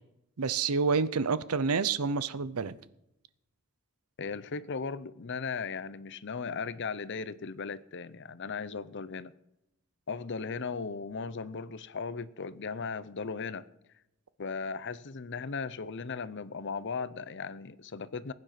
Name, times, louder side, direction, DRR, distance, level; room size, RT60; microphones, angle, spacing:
voice 1, 0.4-2.8, right 5 dB, 80° right, 0.7 m, -28 dB
voice 2, 4.2-9.3 10.1-13.7 14.4-18.3, left 5 dB, 55° left, 0.7 m, -37 dB
20.0 x 9.6 x 5.9 m
head